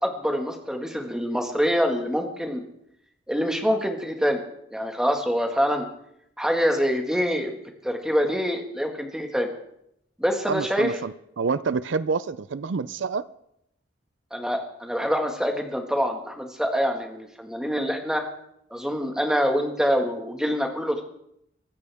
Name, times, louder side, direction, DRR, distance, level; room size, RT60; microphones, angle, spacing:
voice 1, 0.0-2.6 3.3-4.4 4.7-5.9 6.4-7.5 7.8-9.5 10.2-10.9 14.3-18.2 18.7-21.0, equal, 5° right, 1.8 m, -25 dB
voice 2, 10.5-13.3, right 5 dB, 80° right, 0.5 m, -27 dB
23.5 x 13.5 x 3.6 m
head